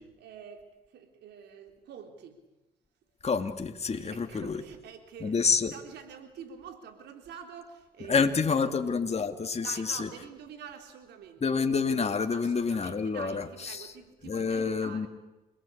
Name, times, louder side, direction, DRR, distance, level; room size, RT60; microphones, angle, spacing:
voice 1, 0.2-2.4 3.9-5.4 5.7-8.8 9.2-9.3 9.6-11.9 12.3-15.1, right 7 dB, 75° right, 6 dB, 3.8 m, -47 dB
voice 2, 3.2-4.6 5.2-5.7 8.1-10.1 11.4-13.9 14.3-15.1, left 5 dB, 40° left, 6 dB, 2.4 m, -28 dB
28.5 x 20.0 x 8.6 m, 1.0 s
supercardioid pair, 60°, 17 cm